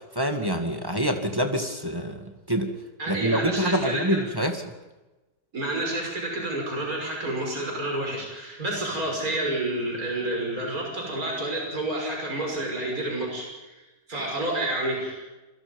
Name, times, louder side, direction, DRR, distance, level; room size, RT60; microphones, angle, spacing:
voice 1, 0.2-2.7 3.1-4.6, equal, 10° right, 4 dB, 2.2 m, -26 dB
voice 2, 3.0-4.3 5.5-13.7 14.1-15.3, right 1 dB, 50° right, -1 dB, 6.5 m, -29 dB
28.0 x 23.5 x 5.4 m, 1.1 s
omnidirectional pair, 1.9 m